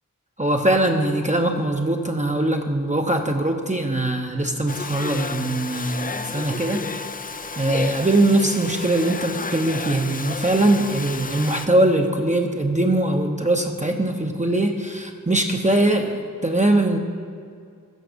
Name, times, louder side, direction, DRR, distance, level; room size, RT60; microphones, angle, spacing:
voice 1, 0.4-6.9 7.6-17.0, right 1 dB, 20° right, 3 dB, 0.7 m, -21 dB
Domestic sounds home sounds, 4.7-11.7, left 4 dB, 25° left, 0.3 m, -32 dB
15.5 x 5.6 x 5.1 m, 2.3 s
wide cardioid pair, 55°, 34 cm